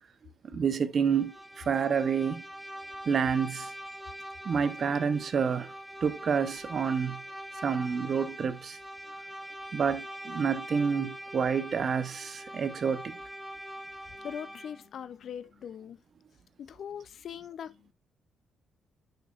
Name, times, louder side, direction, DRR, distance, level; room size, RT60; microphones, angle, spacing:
voice 1, 0.5-2.4 3.1-3.7 4.4-5.7 6.0-7.2 7.6-8.8 9.7-13.2, right 6 dB, 50° right, 0.8 m, -28 dB
Bowed string instrument, 1.0-14.9, equal, ahead, 1.2 m, -43 dB
voice 2, 14.2-16.0 16.6-17.9, left 8 dB, 60° left, 0.4 m, -41 dB
6.7 x 6.2 x 2.4 m
cardioid pair, 90°, 0 cm